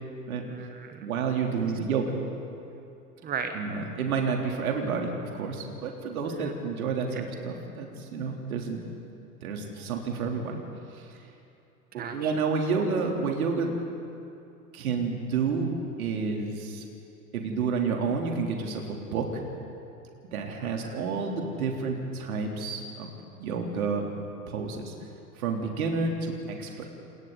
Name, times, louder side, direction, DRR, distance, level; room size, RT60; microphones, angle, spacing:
voice 1, 0.5-1.1 3.2-3.6 6.4-6.5 7.1-7.2 11.9-12.3 20.6-21.1 26.6-26.9, right 6 dB, 20° right, 6 dB, 1.4 m, -37 dB
voice 2, 1.0-2.2 3.5-8.8 9.4-10.6 10.9-11.1 11.9-13.7 14.7-15.7 16.0-16.9 17.3-19.4 20.3-23.1 23.4-24.1 24.5-24.9 25.4-26.7, right 5 dB, 60° right, 1 dB, 3.4 m, -30 dB
30.0 x 28.0 x 4.0 m, 2.7 s
figure-of-eight pair, 80°, 47 cm